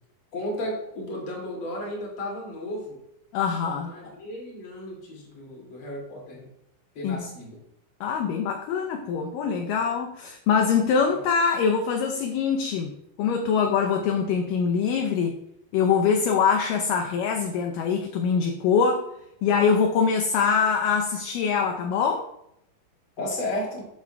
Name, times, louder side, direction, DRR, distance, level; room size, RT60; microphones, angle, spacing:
voice 1, 0.3-3.0 3.8-6.5 6.9-7.6 23.2-23.8, left 1 dB, 40° left, -2 dB, 2.9 m, -33 dB
voice 2, 3.3-3.9 7.0-7.2 8.0-12.9 13.2-15.4 15.7-19.1 19.4-22.3, left 6 dB, 75° left, 3 dB, 2.2 m, -23 dB
12.0 x 7.2 x 2.3 m, 0.76 s
omnidirectional pair, 4.2 m